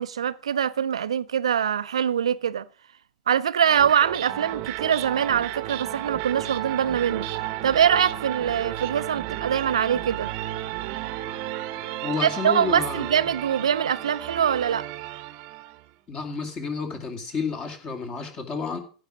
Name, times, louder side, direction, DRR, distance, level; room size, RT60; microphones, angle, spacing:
voice 1, 0.0-2.7 3.3-7.3 7.6-10.3 12.2-14.9, right 8 dB, 70° right, 0.6 m, -23 dB
sound 1, 3.6-15.9, right 15 dB, 45° right, 1.0 m, -33 dB
voice 2, 12.0-13.1 16.1-18.8, left 4 dB, 30° left, 2.6 m, -30 dB
15.5 x 5.1 x 6.1 m
figure-of-eight pair, 90°, 3 cm